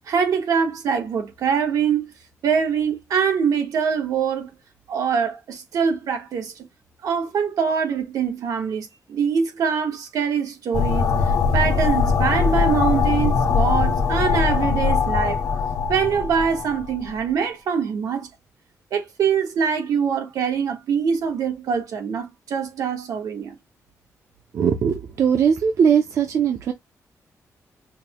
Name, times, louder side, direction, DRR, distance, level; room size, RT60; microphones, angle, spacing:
voice 1, 0.1-2.1 2.4-4.5 4.9-6.5 7.0-11.1 11.5-15.4 15.9-18.3 18.9-23.6, right 6 dB, 85° right, 1.2 m, -23 dB
sound 1, 10.7-17.1, left 5 dB, 80° left, 1.3 m, -21 dB
voice 2, 24.5-26.7, right 7 dB, 60° right, 0.5 m, -20 dB
5.1 x 2.2 x 2.9 m
wide cardioid pair, 165°, 6 cm